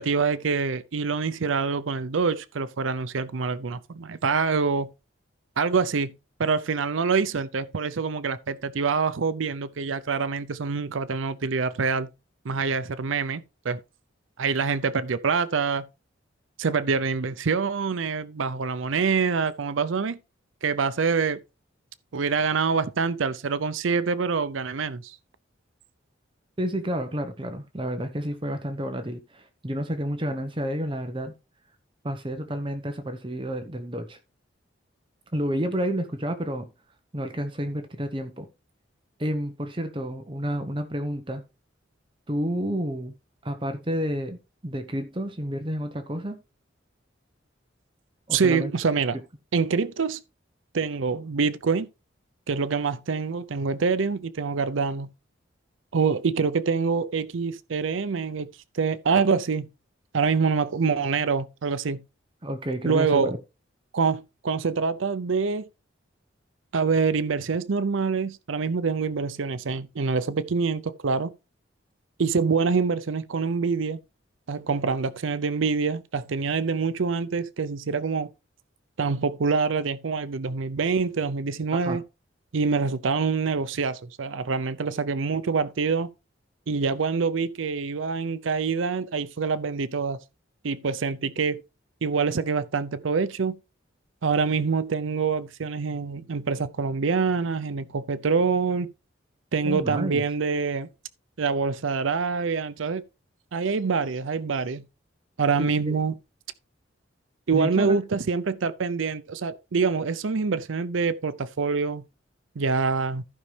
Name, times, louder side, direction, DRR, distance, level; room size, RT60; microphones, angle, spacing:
voice 1, 0.0-4.9 5.6-12.1 12.4-13.8 14.4-15.9 16.6-20.2 20.6-21.4 22.1-25.2 48.3-49.2 49.5-50.2 50.7-51.9 52.5-55.1 55.9-58.5 58.7-59.7 60.1-62.0 62.8-63.3 63.9-65.6 66.7-71.3 72.2-74.0 74.5-78.3 79.0-82.0 82.5-86.1 86.7-90.2 90.6-91.6 92.0-93.6 94.2-98.9 99.5-100.9 101.4-103.0 103.5-104.8 105.4-106.1 107.5-112.0 112.6-113.2, right 5 dB, 80° right, 0.6 m, -25 dB
voice 2, 26.6-31.3 32.0-34.2 35.3-36.7 37.1-38.5 39.2-41.4 42.3-43.1 43.4-46.4 48.3-48.7 62.4-63.4 81.8-82.0 99.6-100.2 105.6-105.9 107.5-108.0, equal, 25° right, 0.9 m, -30 dB
14.5 x 5.4 x 3.3 m
head